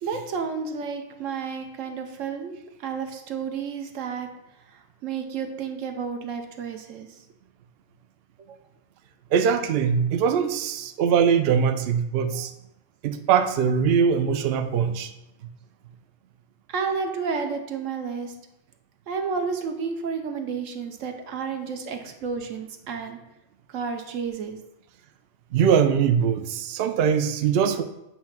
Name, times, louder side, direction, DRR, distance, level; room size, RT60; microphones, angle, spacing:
voice 1, 0.0-2.5 2.8-4.3 4.7-7.1 8.4-8.6 16.7-18.3 19.1-23.2 23.7-24.6, right 5 dB, 85° right, 5 dB, 1.2 m, -31 dB
voice 2, 9.3-12.5 13.0-15.1 25.5-27.8, right 7 dB, 65° right, 8 dB, 0.7 m, -22 dB
8.0 x 2.9 x 5.8 m, 0.90 s
omnidirectional pair, 1.3 m